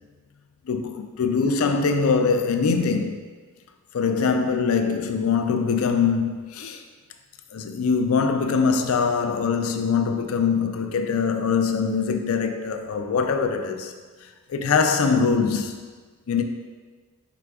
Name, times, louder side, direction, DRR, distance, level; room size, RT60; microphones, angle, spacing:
voice 1, 0.7-3.2 3.9-6.8 7.5-13.9 14.5-15.9 16.3-16.4, left 5 dB, 85° left, 0.4 m, -23 dB
4.8 x 4.8 x 2.3 m
head